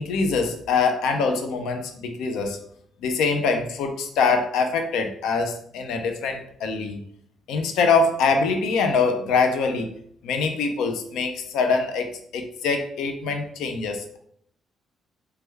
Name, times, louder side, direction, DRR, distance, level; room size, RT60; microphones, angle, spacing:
voice 1, 0.0-2.6 3.0-7.0 7.5-9.9 10.2-14.2, left 4 dB, 85° left, 5 dB, 0.4 m, -24 dB
3.2 x 2.2 x 3.2 m, 0.64 s
cardioid pair, 90°, 0 cm